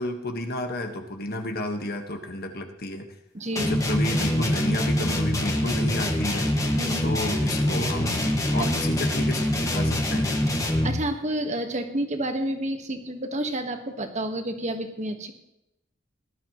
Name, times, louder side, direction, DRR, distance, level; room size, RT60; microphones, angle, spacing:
voice 1, 0.0-3.1 3.6-6.5 7.0-10.4, left 1 dB, 50° left, 4 dB, 1.6 m, -31 dB
voice 2, 3.3-3.7 6.7-7.0 10.8-15.3, right 1 dB, 35° right, 6 dB, 1.6 m, -29 dB
sound 1, 3.6-11.1, left 1 dB, 20° left, 1.8 m, -24 dB
18.5 x 12.0 x 3.1 m, 0.86 s
head